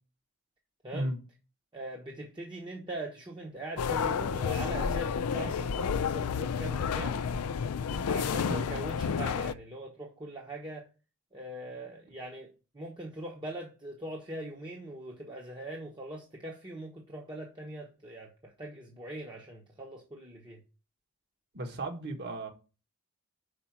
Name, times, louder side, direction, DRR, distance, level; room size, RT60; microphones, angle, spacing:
voice 1, 1.7-7.3 8.1-10.9 11.3-12.5 12.7-20.6, right 1 dB, 20° right, 1.0 m, -41 dB
sound 1, 3.8-9.5, left 6 dB, 80° left, 0.4 m, -30 dB
voice 2, 21.5-22.5, right 1 dB, 50° right, 1.5 m, -34 dB
5.3 x 5.1 x 5.9 m
head